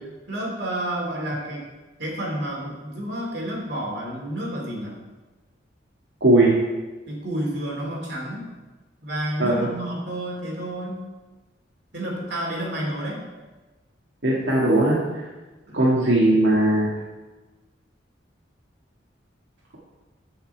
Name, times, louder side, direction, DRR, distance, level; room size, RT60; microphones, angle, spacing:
voice 1, 0.3-1.7 2.0-4.9 7.1-8.4 9.0-11.0 11.9-13.2 15.7-15.8, right 1 dB, 60° right, -2 dB, 2.8 m, -30 dB
voice 2, 6.2-6.6 9.4-9.7 14.2-15.3 15.7-16.9, right 1 dB, 75° right, -7 dB, 1.9 m, -19 dB
12.5 x 5.8 x 4.6 m, 1.2 s
head